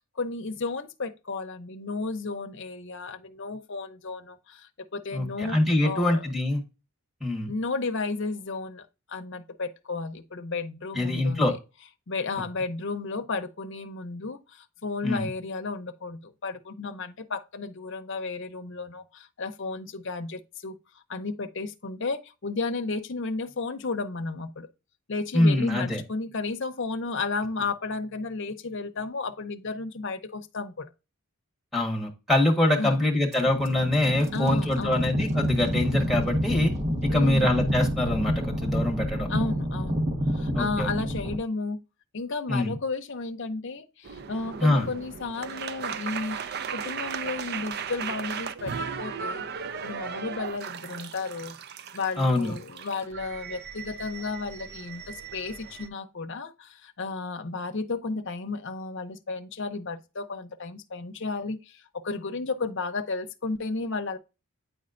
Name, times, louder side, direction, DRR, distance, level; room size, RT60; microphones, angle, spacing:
voice 1, 0.2-6.3 7.5-11.6 12.1-24.7 25.1-30.9 32.8-33.0 34.3-35.2 37.1-37.6 39.3-41.8 42.1-49.4 49.8-51.6 51.9-64.2, left 3 dB, 55° left, 0.7 m, -33 dB
voice 2, 5.1-6.6 7.2-7.5 10.9-11.5 15.0-15.3 25.3-26.0 31.7-36.7 37.0-39.3 40.5-40.9 42.5-42.7 44.6-44.9 52.2-52.5, left 1 dB, ahead, 1.4 m, -24 dB
sound 1, 33.3-41.4, equal, 30° right, 1.3 m, -28 dB
sound 2, 44.0-55.9, right 6 dB, 45° right, 0.4 m, -37 dB
9.2 x 4.3 x 2.5 m
head